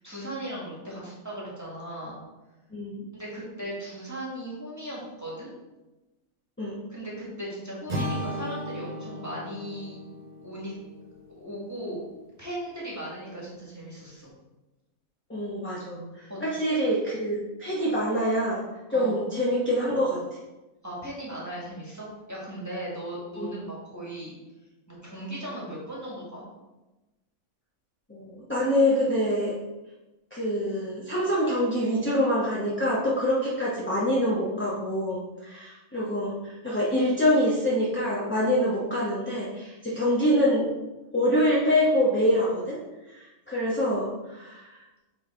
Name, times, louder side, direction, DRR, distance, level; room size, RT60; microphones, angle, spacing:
voice 1, 0.0-2.2 3.1-5.5 6.9-10.0 10.4-10.7 11.4-12.0 12.4-14.3 16.3-16.4 18.9-19.2 20.8-24.3 24.9-26.4, right 1 dB, 10° right, -6 dB, 1.8 m, -37 dB
voice 2, 2.7-3.0 6.6-6.8 15.3-18.6 18.9-20.2 23.4-23.5 28.1-29.6 30.3-40.7 41.1-42.8 43.1-44.8, equal, 10° left, -8 dB, 1.0 m, -25 dB
sound 1, 7.9-11.9, equal, 35° right, 1.6 m, -36 dB
6.2 x 3.8 x 4.5 m, 1.1 s
omnidirectional pair, 1.5 m